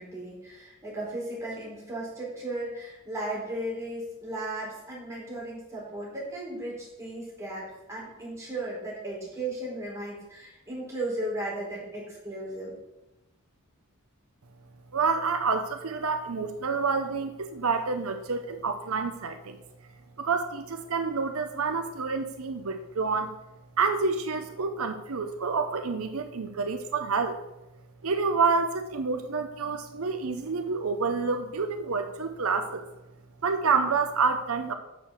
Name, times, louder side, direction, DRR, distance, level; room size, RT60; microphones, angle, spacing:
voice 1, 0.0-12.8, right 1 dB, 15° right, -6 dB, 4.2 m, -36 dB
voice 2, 14.9-19.6 20.2-23.4 23.8-27.4 28.0-32.9 33.4-34.7, right 4 dB, 85° right, 8 dB, 0.8 m, -28 dB
8.4 x 6.7 x 6.3 m, 0.97 s
head